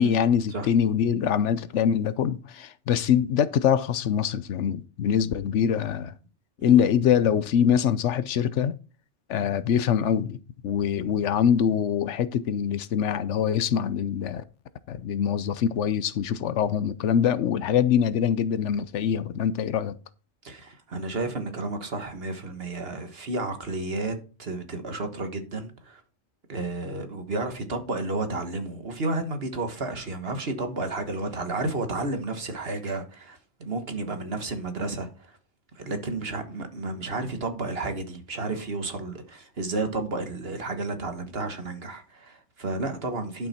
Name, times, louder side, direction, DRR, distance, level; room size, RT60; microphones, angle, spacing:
voice 1, 0.0-6.1 6.6-8.7 9.3-14.4 14.9-20.0, left 8 dB, 80° left, 1.0 m, -24 dB
voice 2, 20.4-26.0 26.5-35.1 35.8-43.5, right 2 dB, 55° right, 1.7 m, -32 dB
11.0 x 6.0 x 4.3 m
omnidirectional pair, 1.2 m